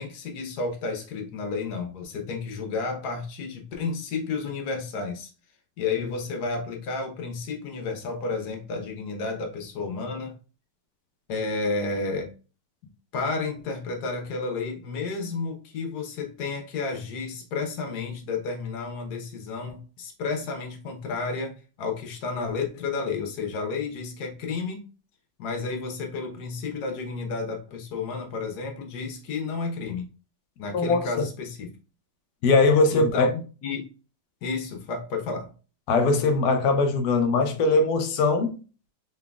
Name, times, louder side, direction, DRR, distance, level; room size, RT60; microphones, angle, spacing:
voice 1, 0.0-5.3 5.8-10.4 11.3-12.3 13.1-24.8 25.4-30.1 30.6-31.7 32.9-33.9 34.4-35.5, left 4 dB, 60° left, 1.2 m, -31 dB
voice 2, 32.4-33.3 35.9-38.5, left 3 dB, 80° left, 0.8 m, -21 dB
4.0 x 3.7 x 2.2 m
omnidirectional pair, 2.3 m